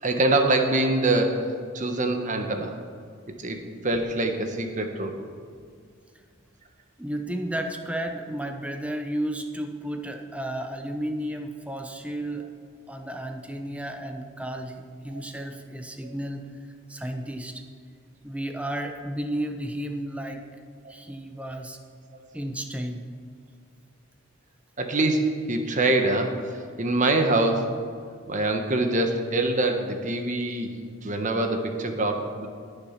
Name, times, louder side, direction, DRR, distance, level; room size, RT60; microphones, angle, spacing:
voice 1, 0.0-1.4 1.7-2.7 3.4-5.2 15.1-15.2 16.0-16.1 20.8-20.9 24.8-26.4 26.8-27.8 28.3-30.7 31.0-32.5, right 2 dB, 35° right, 5 dB, 1.2 m, -24 dB
voice 2, 7.0-12.5 12.9-16.5 16.9-17.6 18.2-20.4 20.9-21.8 22.3-23.1, right 1 dB, 5° right, 5 dB, 0.8 m, -33 dB
20.0 x 7.1 x 5.9 m, 2.1 s
head